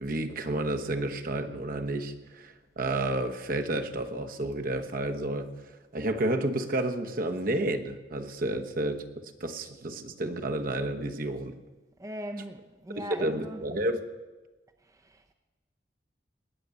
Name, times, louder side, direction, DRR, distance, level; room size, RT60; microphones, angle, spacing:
voice 1, 0.0-5.5 5.9-9.0 9.4-11.5 13.1-14.0, right 1 dB, 55° right, 1.1 m, -31 dB
voice 2, 12.0-13.7 14.8-15.3, equal, 20° right, 0.7 m, -40 dB
19.0 x 6.8 x 8.3 m
head